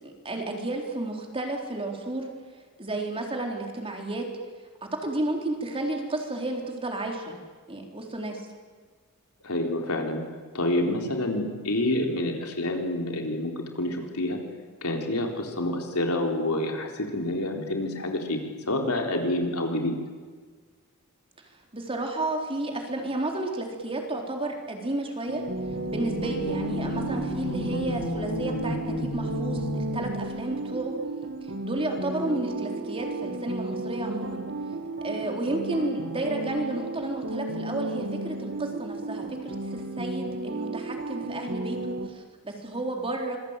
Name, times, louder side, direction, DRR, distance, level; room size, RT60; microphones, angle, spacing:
voice 1, 0.0-2.3 2.8-4.2 5.0-7.4 7.7-8.4 21.4-25.4 25.9-31.0 31.6-34.4 35.0-43.4, right 2 dB, 25° right, 1 dB, 4.0 m, -32 dB
voice 2, 9.4-10.2 10.5-14.4 14.8-20.0, left 1 dB, 75° left, 2 dB, 4.0 m, -28 dB
sound 1, 25.3-42.1, right 2 dB, 55° right, 1.8 m, -34 dB
sound 2, 25.4-30.3, left 1 dB, 50° left, 7.1 m, -32 dB
26.0 x 21.5 x 9.1 m, 1.5 s
head